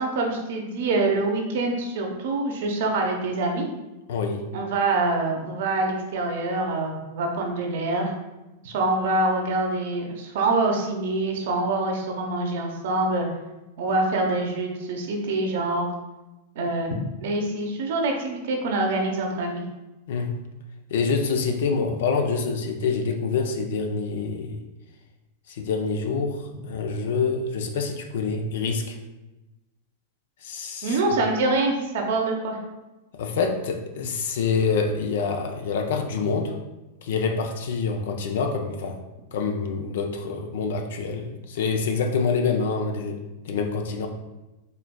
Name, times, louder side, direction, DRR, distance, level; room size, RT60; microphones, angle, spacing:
voice 1, 0.0-3.7 4.5-8.1 8.6-13.3 13.8-15.9 16.5-19.6 30.8-32.6, right 2 dB, 65° right, 2 dB, 0.8 m, -25 dB
voice 2, 4.1-4.4 20.1-20.3 20.9-24.6 25.5-29.0 30.4-31.0 33.2-36.5 37.0-38.9 39.3-43.2 43.5-44.1, left 5 dB, 70° left, 3 dB, 0.5 m, -26 dB
4.5 x 3.3 x 2.2 m, 1.0 s
hypercardioid pair, 100°, 0 cm